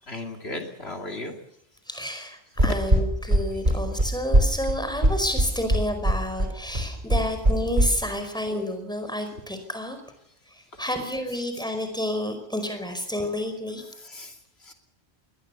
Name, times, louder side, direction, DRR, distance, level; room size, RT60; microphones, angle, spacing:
voice 1, 0.1-1.3 2.6-2.7 10.8-10.9 11.3-11.4 14.0-14.3 14.7-14.8, left 3 dB, 70° left, 4 dB, 3.0 m, -35 dB
voice 2, 1.9-10.0 10.8-13.8, left 1 dB, 5° left, 6 dB, 5.0 m, -30 dB
sound 1, 2.6-7.9, right 1 dB, 45° right, 4.7 m, -20 dB
22.0 x 19.5 x 7.1 m, 0.78 s
omnidirectional pair, 1.1 m